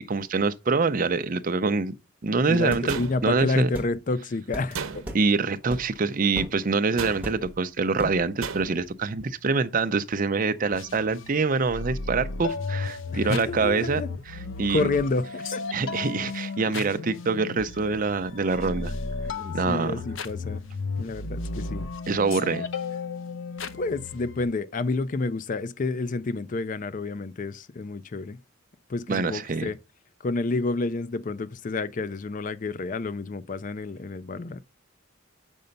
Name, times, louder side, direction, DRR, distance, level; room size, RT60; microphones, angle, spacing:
voice 1, 0.0-1.9 2.2-3.7 5.1-14.0 14.6-14.9 15.7-18.9 19.5-20.0 22.1-22.7 29.1-29.7, right 4 dB, 40° right, 0.5 m, -25 dB
voice 2, 2.5-5.1 13.1-14.1 14.7-15.6 19.3-20.6 21.0-21.9 23.8-28.4 28.9-29.8 30.2-34.6, left 3 dB, 40° left, 0.4 m, -29 dB
sound 1, 2.7-2.9 3.7-3.9 4.5-4.7 5.1-5.3 5.7-6.0 6.4-6.6 7.2-7.6 8.0-8.3, right 1 dB, 10° right, 1.3 m, -36 dB
sound 2, 2.9-3.6 4.7-5.4 7.0-7.5 8.4-8.9, right 5 dB, 90° right, 0.8 m, -35 dB
sound 3, 10.7-24.4, left 4 dB, 65° left, 0.7 m, -34 dB
6.8 x 5.4 x 5.2 m
head